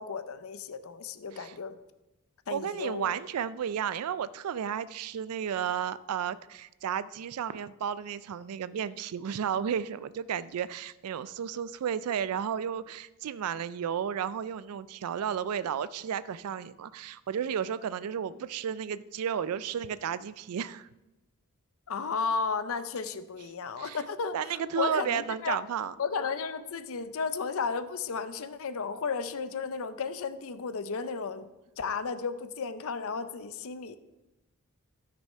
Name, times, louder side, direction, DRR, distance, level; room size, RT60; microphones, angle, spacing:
voice 1, 0.0-1.8 2.5-3.2 21.9-25.6 26.0-31.5 31.8-34.0, left 5 dB, 65° left, 12 dB, 0.6 m, -34 dB
voice 2, 2.5-20.9 23.8-24.0 24.3-25.9, right 8 dB, 75° right, 16 dB, 0.4 m, -33 dB
13.0 x 6.2 x 5.5 m, 1.0 s
head